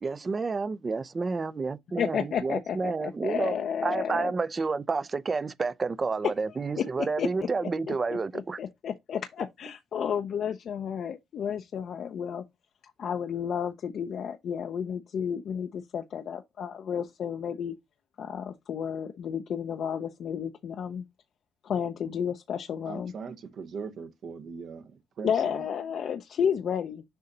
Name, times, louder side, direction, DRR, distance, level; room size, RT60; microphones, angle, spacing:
voice 1, 0.0-3.5 3.8-8.6, right 4 dB, 30° right, 0.5 m, -30 dB
voice 2, 2.0-4.3 6.8-6.9 7.2-7.9 8.3-12.4 13.0-17.7 18.2-21.0 21.6-23.1 25.2-27.0, left 8 dB, 65° left, 0.5 m, -32 dB
voice 3, 22.8-25.6, right 5 dB, 65° right, 0.9 m, -40 dB
6.7 x 2.7 x 5.3 m
cardioid pair, 90°, 0 cm